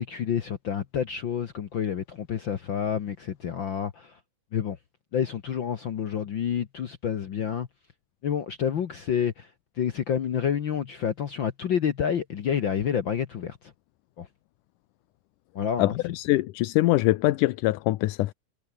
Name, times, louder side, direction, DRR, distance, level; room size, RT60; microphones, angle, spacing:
voice 1, 0.0-4.2 4.5-4.8 5.1-7.7 8.2-9.5 9.8-13.7 14.2-14.3 15.5-16.0, left 8 dB, 55° left, 1.3 m, -28 dB
voice 2, 15.8-18.3, left 18 dB, 85° left, 2.3 m, -23 dB
omnidirectional pair, 3.6 m